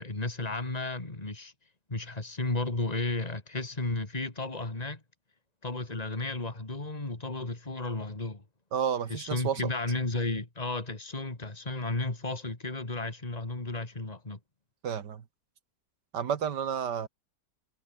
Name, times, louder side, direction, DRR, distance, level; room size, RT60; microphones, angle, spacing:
voice 1, 0.0-1.5 1.9-5.0 5.6-8.4 9.1-14.4, left 2 dB, 20° left, 3.0 m, -33 dB
voice 2, 8.7-9.6 14.8-15.2 16.1-17.1, right 8 dB, 75° right, 2.1 m, -31 dB
omnidirectional pair, 1.9 m